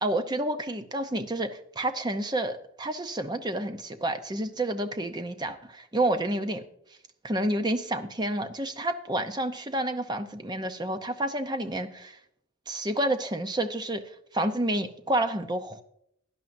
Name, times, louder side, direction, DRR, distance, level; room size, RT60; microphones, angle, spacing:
voice 1, 0.0-6.6 7.2-12.2 12.7-14.0 14.3-15.8, right 1 dB, 20° right, 8 dB, 0.6 m, -29 dB
16.5 x 11.0 x 2.6 m, 0.74 s
head